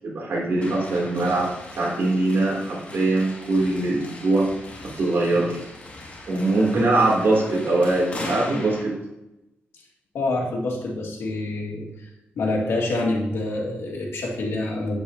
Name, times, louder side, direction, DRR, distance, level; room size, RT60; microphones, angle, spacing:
voice 1, 0.0-1.5 1.8-4.5 4.8-5.6 6.3-8.9, right 2 dB, 65° right, -3 dB, 2.9 m, -22 dB
sound 1, 0.6-8.8, left 1 dB, 30° left, 2.0 m, -39 dB
voice 2, 10.1-12.1 12.4-15.0, left 2 dB, 85° left, -1 dB, 1.9 m, -26 dB
8.8 x 8.7 x 2.8 m, 0.91 s
cardioid pair, 105°, 4 cm